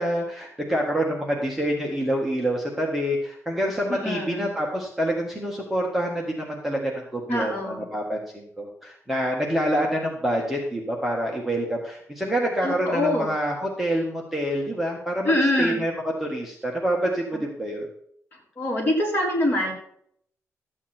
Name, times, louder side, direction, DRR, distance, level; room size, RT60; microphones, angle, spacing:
voice 1, 0.0-15.9 16.2-17.9, equal, 5° right, -2 dB, 1.6 m, -27 dB
voice 2, 3.9-4.5 7.3-7.9 12.6-13.3 15.2-15.8 18.6-19.7, left 1 dB, 35° left, -3 dB, 3.8 m, -24 dB
13.0 x 8.6 x 4.4 m, 0.66 s
wide cardioid pair, 170°, 5 cm